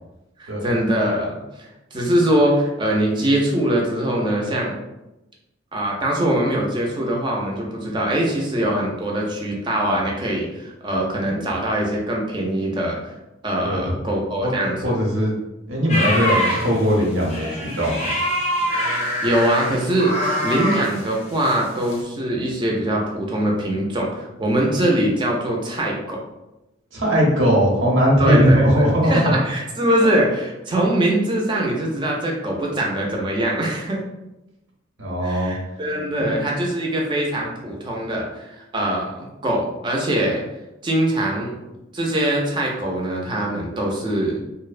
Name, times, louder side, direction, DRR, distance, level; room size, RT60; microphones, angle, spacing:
voice 1, 0.4-1.4 1.9-4.8 5.7-13.0 13.4-14.8 19.2-20.1 20.4-26.2 28.2-34.0 35.2-40.4 40.8-41.6 41.9-44.4, right 1 dB, 25° right, -1 dB, 0.4 m, -22 dB
voice 2, 13.6-14.0 14.4-14.5 14.8-15.3 15.7-18.1 26.9-29.4 35.0-35.5 36.2-36.4, equal, 80° right, -3 dB, 0.8 m, -19 dB
sound 1, 15.9-21.5 21.8-22.0, equal, 35° left, 0.5 m, -24 dB
2.6 x 2.0 x 2.4 m, 0.96 s
head